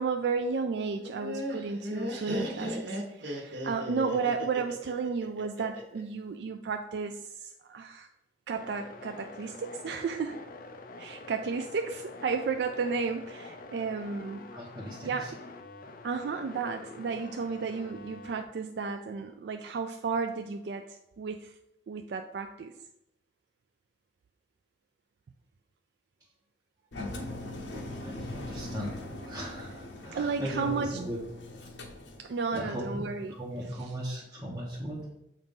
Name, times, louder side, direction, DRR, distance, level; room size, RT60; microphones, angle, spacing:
voice 1, 0.0-8.1 8.5-10.4 11.0-14.5 15.0-15.4 16.0-21.6 21.9-22.8 30.1-31.0 32.2-33.9, right 5 dB, 65° right, 6 dB, 0.3 m, -33 dB
Laughter, 1.0-6.0, equal, 85° right, 1.3 m, -36 dB
sound 1, 8.5-18.4, left 3 dB, 50° left, 0.5 m, -46 dB
voice 2, 14.5-15.3 27.1-27.3 28.0-31.2 31.6-31.7 32.5-32.8 33.3-35.0, equal, 15° right, -6 dB, 1.1 m, -38 dB
Engine, 26.9-32.7, left 1 dB, 80° left, 0.8 m, -41 dB
7.3 x 2.6 x 5.3 m, 0.87 s
head